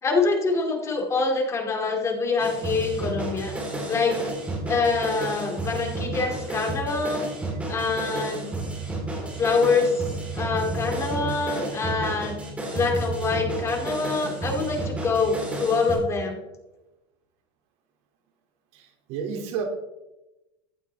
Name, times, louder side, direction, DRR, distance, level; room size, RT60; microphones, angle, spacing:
voice 1, 0.0-3.5 3.9-4.2 4.6-7.3 7.7-8.5 9.4-10.1 10.3-12.4 12.7-16.4, left 4 dB, 25° left, 2 dB, 2.6 m, -25 dB
sound 1, 2.4-16.0, right 2 dB, 10° right, 3.9 m, -32 dB
voice 2, 18.7-19.6, right 7 dB, 60° right, 3 dB, 2.6 m, -31 dB
15.0 x 11.5 x 3.5 m, 0.99 s
cardioid pair, 145°, 12 cm